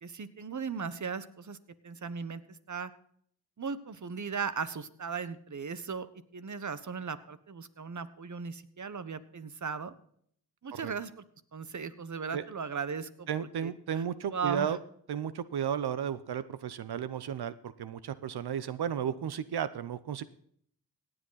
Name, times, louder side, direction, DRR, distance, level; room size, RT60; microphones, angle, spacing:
voice 1, 0.0-1.6 1.8-2.4 2.7-2.9 3.6-6.1 6.3-9.9 10.6-11.2 11.5-13.3 13.6-14.0 14.3-14.8, right 5 dB, 45° right, 14 dB, 1.2 m, -37 dB
voice 2, 13.3-14.8 15.1-20.2, right 8 dB, 70° right, 16 dB, 0.8 m, -34 dB
17.0 x 8.0 x 4.0 m, 0.63 s
cardioid pair, 50°, 40 cm